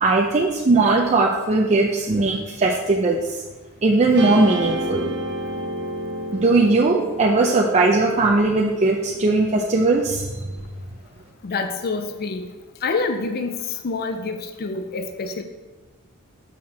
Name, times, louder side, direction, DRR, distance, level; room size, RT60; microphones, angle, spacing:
voice 1, 0.0-3.2 3.8-5.1 6.3-10.4, right 3 dB, 30° right, 0 dB, 0.5 m, -19 dB
Guitar, 4.1-10.6, right 1 dB, 50° right, 1.0 m, -31 dB
voice 2, 11.4-12.5 12.8-15.4, left 4 dB, 45° left, 7 dB, 0.5 m, -27 dB
6.1 x 5.7 x 4.4 m, 1.2 s
head